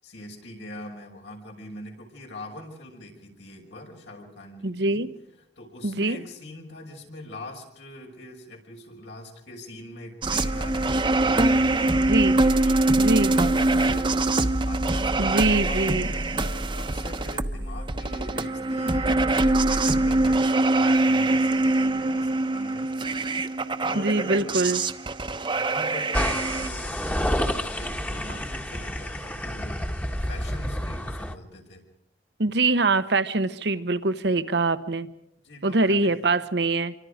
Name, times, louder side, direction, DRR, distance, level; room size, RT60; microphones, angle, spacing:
voice 1, 0.0-5.1 5.6-14.3 14.6-23.5 23.8-24.5 25.5-29.8 30.2-31.8 35.4-36.3, left 1 dB, 85° left, 1 dB, 5.9 m, -43 dB
voice 2, 4.6-5.1 5.8-6.2 12.1-12.4 13.0-13.3 15.2-16.1 23.9-24.8 32.4-35.1 35.6-36.9, right 3 dB, 70° right, 11 dB, 1.1 m, -23 dB
sound 1, 10.2-26.7, right 2 dB, 30° right, 1.0 m, -23 dB
sound 2, 26.1-31.3, equal, 10° left, 1.3 m, -29 dB
27.0 x 24.5 x 5.1 m, 0.76 s
head